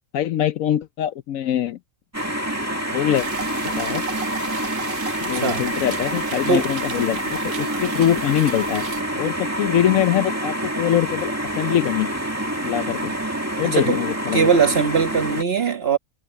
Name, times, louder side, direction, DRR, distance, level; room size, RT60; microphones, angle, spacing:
voice 1, 0.1-1.8 2.9-3.3 3.6-4.0 5.2-8.8 9.2-12.1 12.6-13.1 13.6-14.5, left 11 dB, 70° left, 1.0 m, -23 dB
sound 1, 2.1-15.4, right 1 dB, 10° right, 2.0 m, -27 dB
sound 2, 3.1-9.0, right 6 dB, 80° right, 1.5 m, -36 dB
voice 2, 5.3-5.6 6.5-6.7 13.6-14.0 14.3-16.0, right 5 dB, 45° right, 1.5 m, -20 dB
omnidirectional pair, 1.6 m